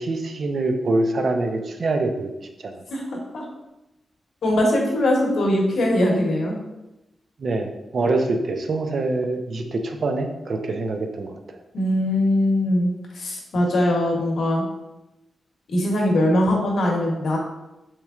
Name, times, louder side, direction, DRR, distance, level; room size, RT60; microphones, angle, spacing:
voice 1, 0.0-2.8 7.4-11.6, right 2 dB, 55° right, 5 dB, 0.4 m, -25 dB
voice 2, 4.4-6.6 11.7-14.6 15.7-17.4, left 1 dB, 75° left, -1 dB, 0.9 m, -21 dB
4.4 x 2.9 x 2.3 m, 0.95 s
wide cardioid pair, 125°, 0 cm